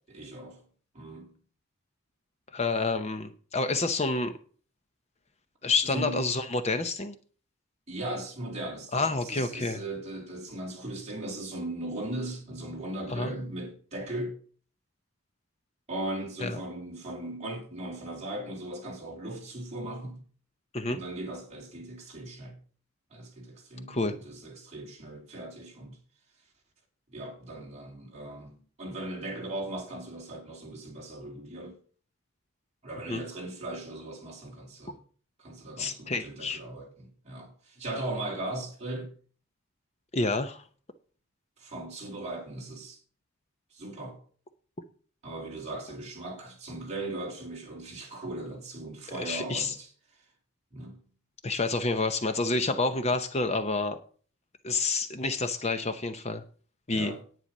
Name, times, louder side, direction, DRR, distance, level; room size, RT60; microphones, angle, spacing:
voice 1, 0.1-0.6 0.9-1.4 5.9-6.4 7.9-14.4 15.9-20.2 20.9-22.6 23.1-26.0 27.1-31.8 32.8-35.0 35.4-39.1 41.6-43.0 43.7-44.2 45.2-49.9 50.7-51.0 56.9-57.2, right 1 dB, 30° right, 3.4 m, -38 dB
voice 2, 2.5-4.4 5.6-7.1 8.9-9.8 13.1-13.3 16.4-16.6 20.7-21.0 23.9-24.2 33.1-33.2 35.8-36.6 40.1-40.6 49.2-49.8 51.4-54.0 54.6-56.4 56.9-57.1, left 3 dB, 30° left, 0.7 m, -28 dB
10.0 x 9.5 x 5.4 m
head